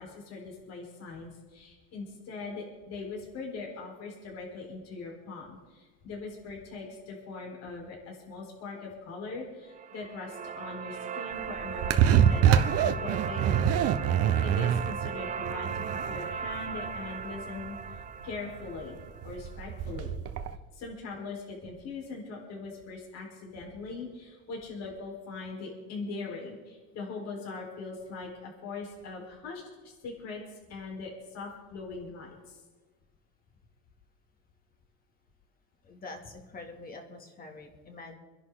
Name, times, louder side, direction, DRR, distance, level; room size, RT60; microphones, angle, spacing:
voice 1, 0.0-14.1 14.4-17.8 18.2-19.0 19.2-20.1 20.8-30.4 30.7-32.6, left 3 dB, 50° left, -1 dB, 4.5 m, -41 dB
sound 1, 9.7-19.8, right 7 dB, 25° right, 0.4 m, -38 dB
sound 2, 11.3-20.6, right 9 dB, 45° right, 1.0 m, -26 dB
voice 2, 35.8-38.1, left 3 dB, 25° left, 3 dB, 2.6 m, -45 dB
26.5 x 11.0 x 3.9 m, 1.3 s
cardioid pair, 135°, 33 cm